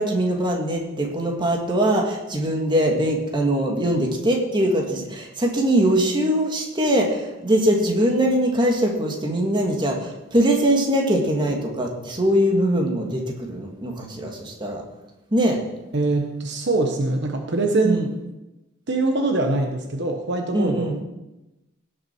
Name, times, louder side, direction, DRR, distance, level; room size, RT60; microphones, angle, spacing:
voice 1, 0.0-14.8 15.3-15.6 17.8-18.1 20.5-21.0, right 1 dB, 25° right, 0 dB, 1.8 m, -22 dB
voice 2, 15.9-18.0 18.9-21.0, right 2 dB, 60° right, 3 dB, 1.1 m, -23 dB
17.5 x 6.7 x 4.5 m, 0.98 s
head